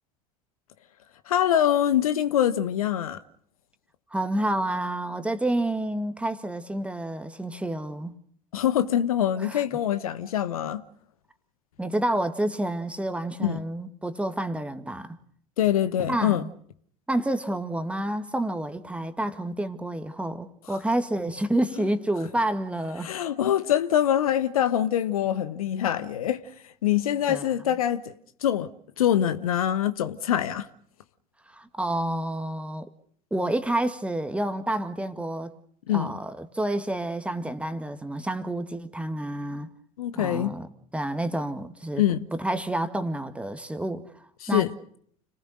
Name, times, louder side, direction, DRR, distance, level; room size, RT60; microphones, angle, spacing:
voice 1, 1.3-3.2 8.5-10.8 13.4-13.6 15.6-16.4 21.8-21.9 23.0-26.4 26.8-28.1 28.4-28.7 29.0-30.7 35.9-36.1 40.0-40.5 42.0-42.3 44.4-44.7, left 10 dB, 70° left, 1.3 m, -24 dB
voice 2, 4.1-8.2 9.4-9.6 11.8-15.2 16.1-16.5 17.1-23.1 27.3-27.5 31.5-32.9 33.3-35.5 35.9-39.7 40.2-42.0 42.3-44.7, right 1 dB, 5° right, 1.9 m, -29 dB
30.0 x 19.5 x 6.5 m
figure-of-eight pair, 75°, 19 cm